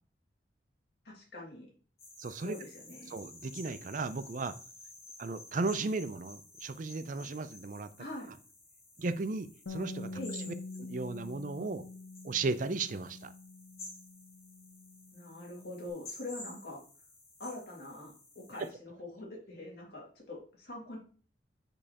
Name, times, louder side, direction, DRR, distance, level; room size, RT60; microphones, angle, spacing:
voice 1, 1.0-1.7 2.4-3.2 8.0-8.3 10.1-10.5 15.1-16.8 17.4-21.0, left 2 dB, 60° left, -3 dB, 2.4 m, -44 dB
sound 1, 2.0-18.7, left 2 dB, 35° left, 2.4 m, -52 dB
voice 2, 2.2-2.5 3.1-4.6 5.2-7.9 9.0-10.2 10.5-11.8 12.2-13.3, right 3 dB, 45° right, 11 dB, 0.4 m, -35 dB
Bass guitar, 9.7-15.9, left 3 dB, 75° left, 0.5 m, -46 dB
6.4 x 5.3 x 2.9 m, 0.41 s
head